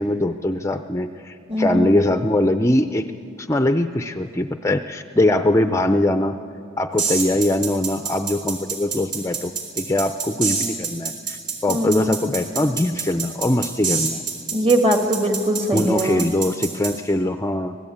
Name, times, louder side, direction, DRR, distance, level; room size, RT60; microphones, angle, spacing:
voice 1, 0.0-3.1 3.4-6.4 6.8-9.5 9.8-14.2 15.7-17.8, left 1 dB, 15° left, 8 dB, 0.5 m, -22 dB
voice 2, 1.5-1.9 11.7-12.1 14.5-16.2, right 1 dB, 30° right, 4 dB, 2.0 m, -21 dB
sound 1, 7.0-16.9, right 5 dB, 45° right, 5.0 m, -26 dB
25.0 x 18.0 x 8.7 m, 2.4 s
head